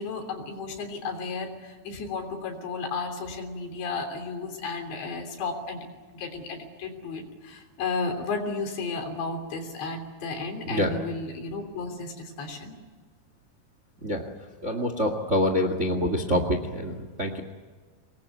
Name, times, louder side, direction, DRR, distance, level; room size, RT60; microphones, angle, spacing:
voice 1, 0.0-5.9 6.1-12.7, left 4 dB, 80° left, 3 dB, 5.5 m, -33 dB
voice 2, 14.0-14.3 14.6-17.4, equal, 45° right, 7 dB, 0.9 m, -26 dB
25.5 x 21.5 x 8.5 m, 1.4 s
omnidirectional pair, 5.0 m